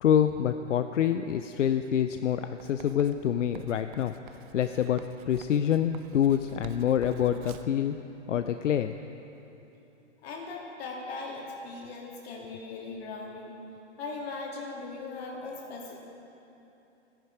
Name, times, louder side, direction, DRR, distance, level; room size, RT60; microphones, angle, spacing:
voice 1, 0.0-4.1 4.5-8.0 8.3-9.0, left 9 dB, 90° left, 9 dB, 0.6 m, -26 dB
Writing, 2.6-7.8, right 9 dB, 45° right, 0.7 m, -50 dB
voice 2, 10.2-13.6 14.0-16.0, left 3 dB, 60° left, -2 dB, 2.9 m, -39 dB
14.0 x 10.5 x 4.9 m, 2.9 s
hypercardioid pair, 130°, 36 cm